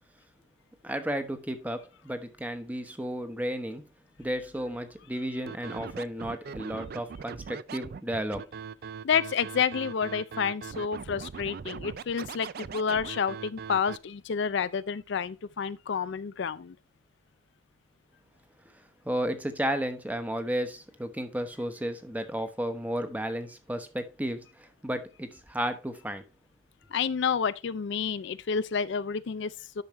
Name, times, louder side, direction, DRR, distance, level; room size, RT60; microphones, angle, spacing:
voice 1, 0.8-3.8 4.2-8.4 19.0-26.2, equal, 10° right, 1.0 m, -33 dB
Scratching (performance technique), 5.5-14.0, right 6 dB, 50° right, 0.4 m, -40 dB
voice 2, 9.0-16.8 26.9-29.8, left 6 dB, 60° left, 0.4 m, -29 dB
10.5 x 6.3 x 3.1 m
head